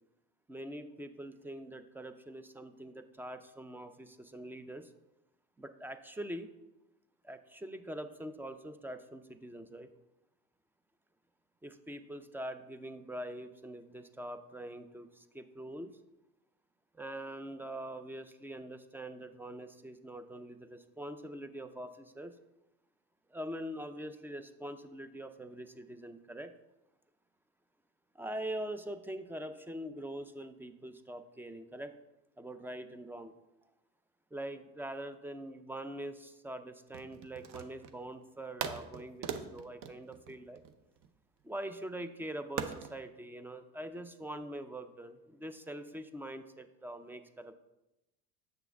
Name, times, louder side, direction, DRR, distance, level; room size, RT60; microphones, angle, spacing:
voice 1, 0.5-4.9 5.6-6.5 7.2-9.9 11.6-16.0 16.9-22.3 23.3-26.5 28.2-31.9 32.4-33.3 34.3-40.6 41.4-47.5, right 1 dB, 5° right, 10 dB, 0.4 m, -43 dB
sound 1, 36.9-38.0 38.6-41.1 42.6-43.0, right 7 dB, 50° right, 0.7 m, -40 dB
7.7 x 6.0 x 3.5 m, 0.95 s
supercardioid pair, 95°, 37 cm